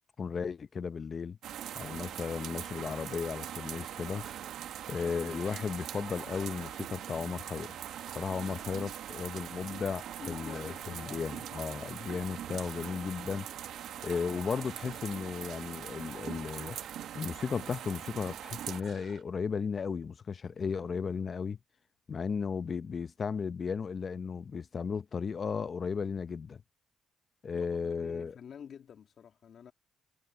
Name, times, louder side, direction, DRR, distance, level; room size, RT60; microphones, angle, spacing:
voice 1, 0.2-1.4 1.8-4.3 4.9-7.8 8.1-13.5 14.0-16.8 17.1-21.6 22.1-26.6 27.4-28.4, left 6 dB, 45° left, 0.8 m, -35 dB
sound 1, 1.4-18.8, right 10 dB, 75° right, 1.5 m, -42 dB
sound 2, 4.2-4.6 5.1-6.7 7.8-8.8 9.3-10.9 12.2-13.0 13.5-15.0 16.1-17.1 17.7-19.2 20.5-20.9, right 8 dB, 60° right, 3.5 m, -53 dB
voice 2, 10.2-11.3 27.5-29.7, left 8 dB, 60° left, 2.4 m, -48 dB
cardioid pair, 90°, 0 cm